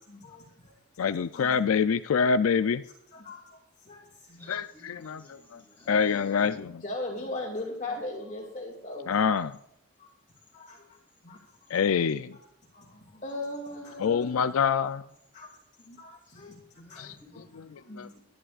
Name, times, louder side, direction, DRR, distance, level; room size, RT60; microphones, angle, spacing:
voice 1, 0.1-0.7 1.3-1.7 3.1-4.5 6.8-9.1 10.0-10.1 10.5-11.0 11.2-11.4 12.7-14.3 15.3-15.5 15.8-17.1 17.8-18.1, left 2 dB, 35° left, -1 dB, 2.3 m, -39 dB
voice 2, 1.0-2.8 4.5-5.2 5.9-6.7 9.1-9.6 11.7-12.4 14.0-15.0 17.0-17.1 18.0-18.1, left 6 dB, 80° left, 12 dB, 0.4 m, -25 dB
voice 3, 4.2-6.7 9.3-9.4 10.9-11.0 11.7-12.0 13.7-14.6 16.8-18.2, left 1 dB, 10° left, -3 dB, 5.2 m, -56 dB
22.0 x 10.5 x 2.4 m, 0.75 s
head